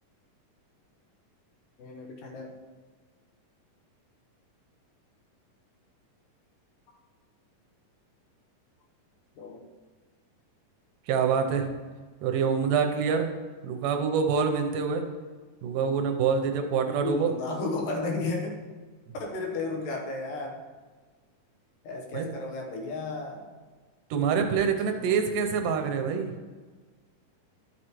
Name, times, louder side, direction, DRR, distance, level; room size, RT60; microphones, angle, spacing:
voice 1, 1.8-2.6 6.9-7.0 9.4-9.6 16.7-18.6 19.1-20.6 21.8-23.5 24.9-25.2, left 3 dB, 85° left, 0 dB, 2.8 m, -34 dB
voice 2, 11.1-11.7 12.2-13.3 13.6-15.0 15.6-17.3 22.1-22.2 24.1-26.3, right 6 dB, 85° right, 5 dB, 2.3 m, -26 dB
12.5 x 6.3 x 3.1 m, 1.4 s
omnidirectional pair, 3.9 m